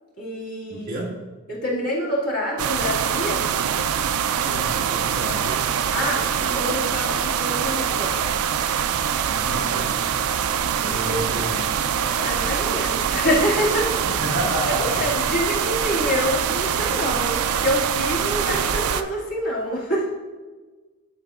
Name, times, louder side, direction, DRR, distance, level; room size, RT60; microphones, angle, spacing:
voice 1, 0.2-1.0 1.5-3.5 5.9-8.2 10.8-11.2 12.2-14.0 14.7-20.1, equal, 85° left, -5 dB, 2.0 m, -26 dB
voice 2, 0.7-1.2 4.4-5.6 9.2-10.0 10.8-11.8 14.0-15.0, equal, 40° right, -4 dB, 1.5 m, -31 dB
sound 1, 2.6-19.0, right 8 dB, 75° right, 0.4 m, -24 dB
10.5 x 5.6 x 2.4 m, 1.3 s
head